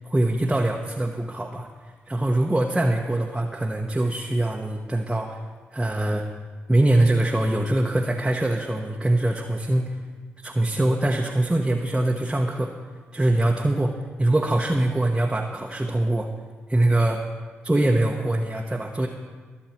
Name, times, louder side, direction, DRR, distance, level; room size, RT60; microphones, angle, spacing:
voice 1, 0.0-5.4 5.7-6.3 6.7-10.0 10.4-12.7 13.1-16.3 16.7-17.2 17.6-19.1, right 1 dB, 15° right, 1 dB, 1.1 m, -23 dB
21.5 x 7.1 x 4.5 m, 1.5 s
hypercardioid pair, 40°, 5 cm